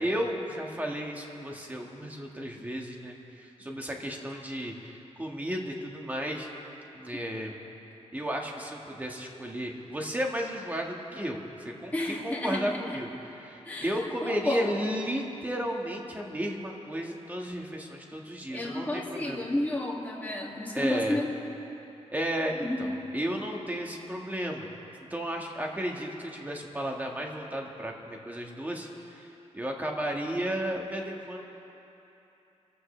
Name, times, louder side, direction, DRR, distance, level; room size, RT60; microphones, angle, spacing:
voice 1, 0.0-6.5 6.9-7.5 8.1-13.1 13.4-19.4 20.7-21.2 22.1-24.7 25.1-29.3 29.5-31.5, equal, 15° right, 0 dB, 1.7 m, -33 dB
voice 2, 11.9-13.0 13.7-14.7 18.5-21.3 22.6-22.8, left 1 dB, 15° left, -4 dB, 2.2 m, -32 dB
28.0 x 15.0 x 3.3 m, 3.0 s
wide cardioid pair, 140°, 12 cm